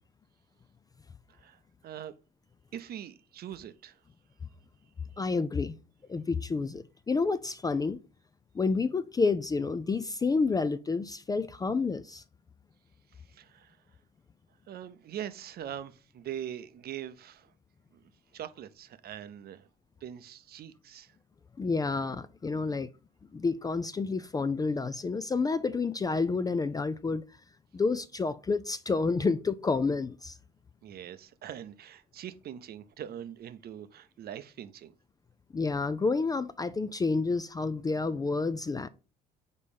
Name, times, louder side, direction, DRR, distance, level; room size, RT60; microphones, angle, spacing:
voice 1, 1.3-2.1 2.7-4.0 13.1-13.8 14.7-17.5 17.9-18.0 18.3-19.7 20.0-21.2 30.8-34.9, right 10 dB, 45° right, 0.7 m, -42 dB
voice 2, 5.2-5.8 6.1-8.0 8.5-12.2 21.6-22.9 23.3-27.2 27.7-30.3 35.5-38.9, left 4 dB, 20° left, 0.4 m, -29 dB
5.3 x 4.1 x 5.0 m
hypercardioid pair, 60°, 21 cm